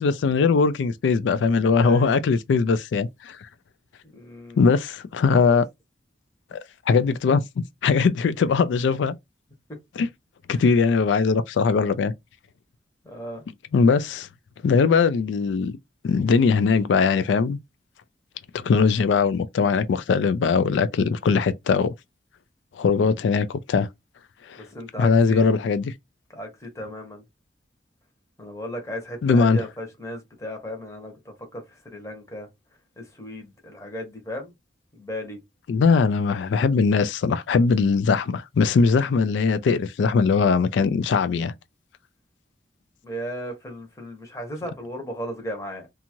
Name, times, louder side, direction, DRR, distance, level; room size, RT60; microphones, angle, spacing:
voice 1, 0.0-3.4 4.6-5.6 6.5-6.6 6.9-7.4 7.8-9.1 10.0-10.1 10.5-12.1 13.7-14.3 14.6-15.7 16.0-17.6 18.5-21.9 22.8-23.9 24.5-24.6 25.0-25.9 29.2-29.6 35.7-41.5, left 5 dB, 80° left, 0.3 m, -20 dB
voice 2, 1.8-2.1 4.1-4.6 5.3-5.6 9.7-9.8 13.0-13.4 24.6-25.5 26.3-27.2 28.4-32.5 33.0-34.5 34.9-35.4 43.0-45.9, equal, 15° left, 0.8 m, -35 dB
2.6 x 2.4 x 2.9 m
head